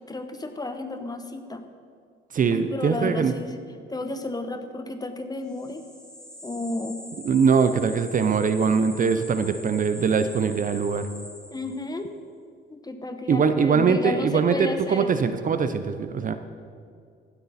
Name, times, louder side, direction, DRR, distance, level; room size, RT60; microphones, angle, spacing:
voice 1, 0.1-1.6 2.5-3.5 3.9-5.8 6.4-7.0 7.6-7.8 11.5-12.1 12.7-15.1, left 2 dB, 20° left, 7 dB, 1.0 m, -32 dB
voice 2, 2.3-3.3 7.2-11.1 13.3-16.3, right 6 dB, 40° right, 10 dB, 0.6 m, -22 dB
sound 1, 5.5-12.0, left 1 dB, 5° left, 1.9 m, -43 dB
15.5 x 8.1 x 4.2 m, 2.3 s
cardioid pair, 90°, 20 cm